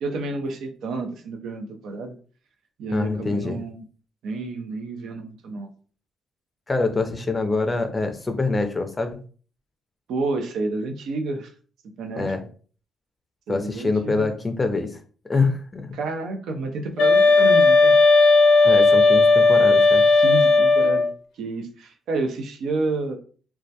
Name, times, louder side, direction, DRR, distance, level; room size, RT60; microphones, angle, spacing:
voice 1, 0.0-2.1 2.8-3.8 4.2-5.7 10.1-11.5 12.0-12.3 13.5-14.3 15.9-17.9 20.1-21.1 21.4-23.2, right 2 dB, 75° right, 5 dB, 0.4 m, -30 dB
voice 2, 2.9-3.6 6.7-9.2 12.2-12.4 13.5-15.9 18.6-20.0, left 3 dB, 25° left, 7 dB, 0.4 m, -25 dB
sound 1, 17.0-21.1, left 3 dB, 85° left, 0.4 m, -15 dB
2.2 x 2.1 x 2.7 m, 0.41 s
cardioid pair, 90°, 0 cm